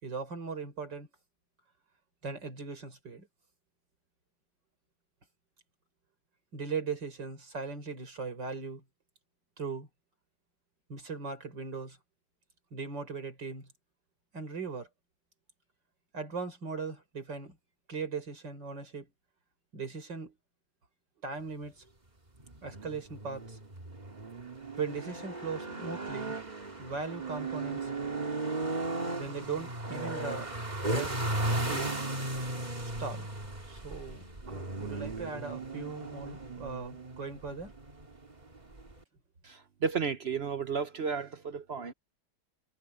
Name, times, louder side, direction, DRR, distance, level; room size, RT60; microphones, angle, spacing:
voice 1, 0.0-1.1 2.2-3.3 6.5-8.8 9.6-9.9 10.9-12.0 12.7-13.7 14.3-14.9 16.1-17.6 17.9-19.1 19.7-20.4 21.2-21.8 22.6-23.6 24.8-26.4 26.8-27.9 29.1-30.5 30.8-31.1 31.7-32.0 33.0-33.3 33.7-37.7, right 4 dB, 85° right, 5.5 m, -39 dB
sound 1, 22.4-39.0, right 2 dB, 25° right, 2.4 m, -36 dB
voice 2, 39.4-41.9, right 5 dB, 55° right, 0.7 m, -33 dB
omnidirectional pair, 1.9 m